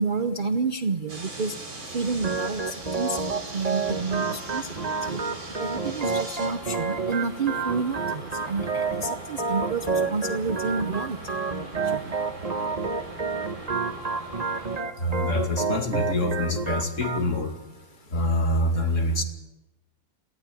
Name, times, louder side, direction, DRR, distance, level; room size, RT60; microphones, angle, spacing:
voice 1, 0.0-1.5 1.9-2.6 2.9-3.2 3.5-4.6 5.1-5.2 5.6-11.2 11.9-12.1, right 4 dB, 60° right, 10 dB, 0.5 m, -29 dB
sound 1, 1.1-14.8, right 2 dB, 85° right, 4.6 m, -41 dB
Organ, 2.2-17.2, right 4 dB, 25° right, 1.0 m, -30 dB
voice 2, 15.0-17.6 18.1-19.2, left 1 dB, 40° left, 4 dB, 2.8 m, -25 dB
18.5 x 15.5 x 9.8 m, 0.97 s
omnidirectional pair, 2.1 m